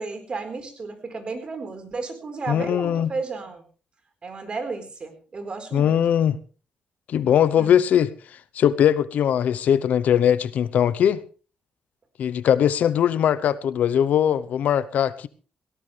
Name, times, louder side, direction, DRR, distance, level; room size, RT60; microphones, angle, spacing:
voice 1, 0.0-3.6 4.2-6.0 7.6-7.8, right 4 dB, 40° right, 4.5 m, -33 dB
voice 2, 2.5-3.1 5.7-6.4 7.1-8.1 8.5-11.2 12.2-15.3, left 9 dB, 75° left, 0.8 m, -20 dB
18.0 x 17.5 x 3.4 m
cardioid pair, 105°, 3 cm